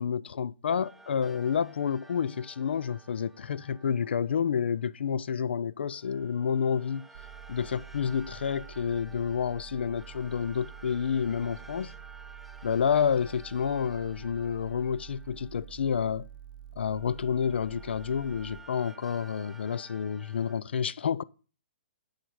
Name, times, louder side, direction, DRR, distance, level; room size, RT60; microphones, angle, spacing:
voice 1, 0.0-7.1 7.5-11.9 12.6-16.3 16.8-21.2, left 7 dB, 80° left, 0.5 m, -29 dB
sound 1, 0.7-4.9 5.8-16.3 16.8-20.6, right 3 dB, ahead, 0.5 m, -53 dB
sound 2, 7.1-18.6, right 10 dB, 50° right, 0.6 m, -48 dB
9.8 x 8.3 x 4.7 m
hypercardioid pair, 170°, 6 cm